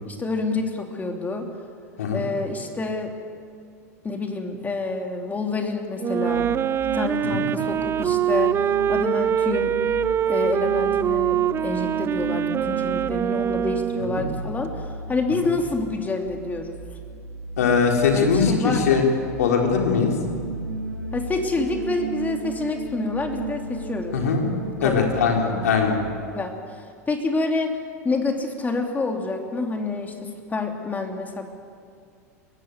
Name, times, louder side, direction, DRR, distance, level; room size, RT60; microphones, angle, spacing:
voice 1, 0.0-1.5 2.1-3.2 4.0-6.5 6.9-9.8 10.3-14.7 15.1-16.8 18.1-19.0 21.1-24.2 24.8-25.1 25.5-25.8 26.3-26.6 27.1-27.8 28.0-31.4, left 3 dB, 20° left, 3 dB, 2.9 m, -27 dB
Wind instrument woodwind instrument, 6.0-14.4, right 9 dB, 30° right, 0.5 m, -24 dB
sound 1, 6.2-26.0, right 4 dB, 90° right, 3.7 m, -35 dB
voice 2, 17.6-19.0 19.4-20.1 24.1-24.5 24.8-26.0, left 6 dB, 75° left, 1 dB, 4.0 m, -21 dB
21.0 x 16.0 x 9.5 m, 2.3 s
hypercardioid pair, 85°, 9 cm